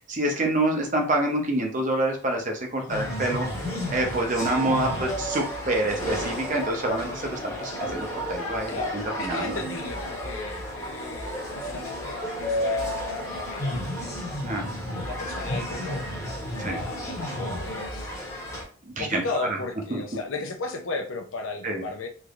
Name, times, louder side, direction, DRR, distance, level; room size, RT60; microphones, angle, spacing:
voice 1, 0.1-3.5 3.9-9.6 14.4-14.6 16.6-16.8 18.9-19.2 19.9-20.0 21.6-21.8, right 1 dB, 40° right, 2 dB, 0.7 m, -27 dB
sound 1, 2.9-18.6, equal, 15° left, 1.0 m, -32 dB
voice 2, 4.8-5.3 8.7-14.2 14.9-16.1 16.6-18.1 19.0-22.1, left 3 dB, 80° left, 5 dB, 0.6 m, -36 dB
3.3 x 3.0 x 2.5 m, 0.42 s
head